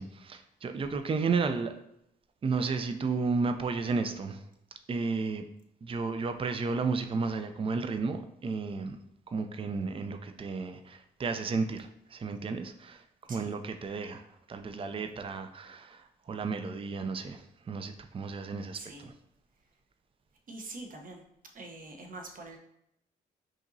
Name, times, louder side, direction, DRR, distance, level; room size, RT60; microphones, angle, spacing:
voice 1, 0.0-1.7 2.4-4.4 4.9-5.4 5.8-9.0 9.3-13.0 13.3-19.1, right 4 dB, 30° right, 8 dB, 0.4 m, -33 dB
voice 2, 18.7-19.0 20.5-21.2 21.5-22.6, right 2 dB, 50° right, 2 dB, 0.9 m, -44 dB
4.9 x 2.9 x 2.7 m, 0.79 s
cardioid pair, 65°, 18 cm